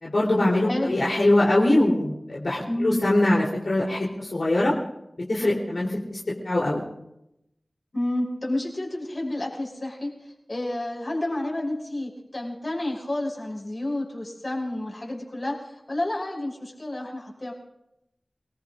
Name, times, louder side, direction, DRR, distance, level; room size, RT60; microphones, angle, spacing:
voice 1, 0.0-4.7 5.3-6.2 6.4-6.8, left 1 dB, 80° left, -5 dB, 3.4 m, -22 dB
voice 2, 0.6-1.0 2.7-3.0 7.9-10.1 10.5-17.5, left 1 dB, 45° left, -1 dB, 5.8 m, -30 dB
29.5 x 19.5 x 2.5 m, 0.84 s
wide cardioid pair, 55°, 0 cm